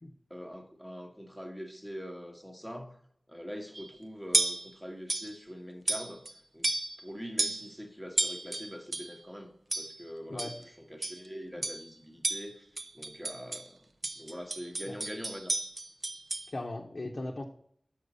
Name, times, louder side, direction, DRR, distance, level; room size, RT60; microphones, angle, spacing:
voice 1, 0.3-3.0 3.3-6.2 6.5-6.7 7.0-10.5 10.9-13.9 14.2-15.5, equal, ahead, 4 dB, 1.1 m, -43 dB
sound 1, 3.7-3.9 4.3-4.7 5.1-5.4 5.9-6.3 6.6-7.0 7.4-7.7 8.2-9.2 9.7-10.0 10.4-10.6 11.0-11.3 11.6-11.9 12.2-13.7 14.0-16.5, right 2 dB, 55° right, 0.6 m, -33 dB
voice 2, 16.5-17.4, left 2 dB, 50° left, -1 dB, 0.8 m, -38 dB
6.6 x 5.9 x 5.4 m, 0.66 s
wide cardioid pair, 70°, 0 cm